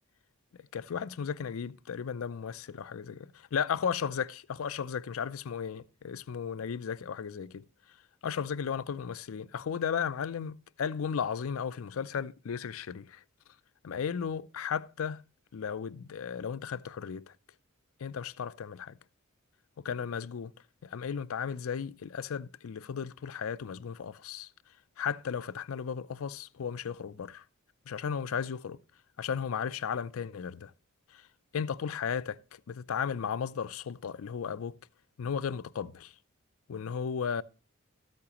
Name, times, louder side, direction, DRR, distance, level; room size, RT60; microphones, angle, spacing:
voice 1, 0.7-7.6 8.2-13.2 13.8-15.2 15.5-17.3 18.0-19.0 19.8-20.5 20.8-24.5 25.0-27.4 27.9-28.8 29.2-30.7 31.1-31.2 31.5-34.8 35.2-36.1 36.7-37.4, left 7 dB, 75° left, 0.4 m, -35 dB
13.5 x 8.5 x 2.9 m
head